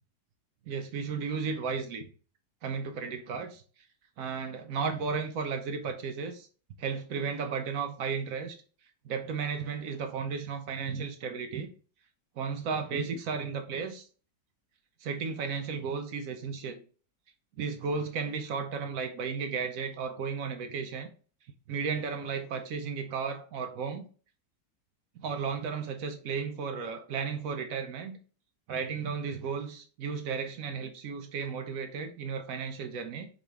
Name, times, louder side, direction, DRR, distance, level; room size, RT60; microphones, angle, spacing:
voice 1, 0.7-2.1 2.6-3.6 4.2-6.5 6.8-8.6 9.0-11.7 12.4-14.1 15.0-16.8 17.6-21.1 21.7-24.1 25.2-28.2 28.7-33.3, right 5 dB, 65° right, 0.9 m, -34 dB
4.1 x 3.8 x 3.4 m
omnidirectional pair, 1.8 m